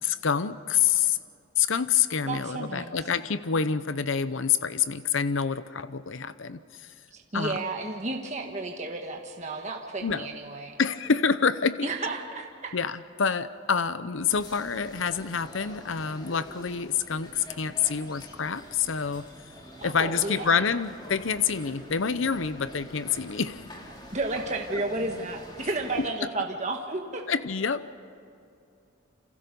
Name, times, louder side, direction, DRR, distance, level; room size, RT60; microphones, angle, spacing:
voice 1, 0.0-1.2 1.6-6.9 7.3-7.6 10.0-10.3 10.8-11.9 12.7-19.3 19.8-23.6 26.2-26.3 27.3-27.9, left 6 dB, 70° left, 13 dB, 0.7 m, -27 dB
voice 2, 2.3-2.9 7.1-10.8 11.8-12.7 19.8-20.6 24.1-27.2, right 2 dB, 35° right, 2 dB, 1.4 m, -32 dB
sound 1, 14.3-26.1, equal, 20° left, 2.9 m, -46 dB
28.5 x 26.5 x 5.4 m, 2.5 s
head